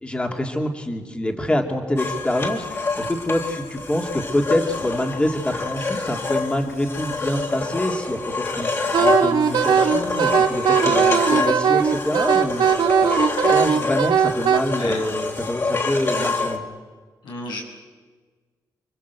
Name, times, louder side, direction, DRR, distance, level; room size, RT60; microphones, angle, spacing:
voice 1, 0.0-12.8 13.1-13.2 13.5-16.6, left 1 dB, 15° left, 3 dB, 2.4 m, -26 dB
sound 1, 2.0-16.6, left 3 dB, 35° left, 3.5 m, -27 dB
Wind instrument woodwind instrument, 8.9-14.6, right 7 dB, 80° right, 2.2 m, -19 dB
voice 2, 13.2-13.6 14.7-15.0 17.2-17.6, left 2 dB, 90° left, 0 dB, 7.6 m, -33 dB
29.5 x 23.0 x 8.2 m, 1.4 s
wide cardioid pair, 135°, 7 cm